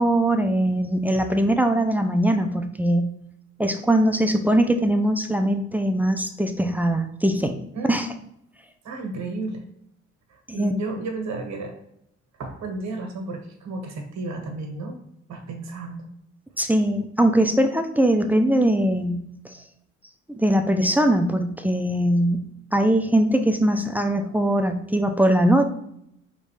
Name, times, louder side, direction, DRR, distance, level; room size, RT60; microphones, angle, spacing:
voice 1, 0.0-3.1 3.6-7.6 7.8-8.1 10.5-10.7 16.6-19.2 20.4-22.4 22.7-25.7, right 1 dB, 5° right, 6 dB, 0.4 m, -21 dB
voice 2, 8.8-9.6 10.3-11.7 12.4-15.0 15.3-16.1, right 2 dB, 65° right, 3 dB, 1.3 m, -32 dB
5.3 x 3.1 x 3.2 m, 0.74 s
cardioid pair, 90°, 30 cm